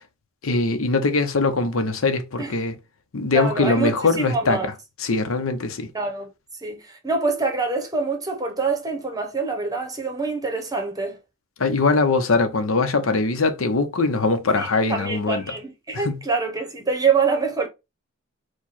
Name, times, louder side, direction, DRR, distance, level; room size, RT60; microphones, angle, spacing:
voice 1, 0.4-2.8 3.1-4.6 5.0-5.9 11.6-15.4 15.9-16.2, left 3 dB, 80° left, 0.7 m, -22 dB
voice 2, 3.3-4.7 5.9-6.3 6.6-11.2 14.6-17.7, right 4 dB, 20° right, 1.0 m, -25 dB
4.6 x 2.3 x 4.2 m
head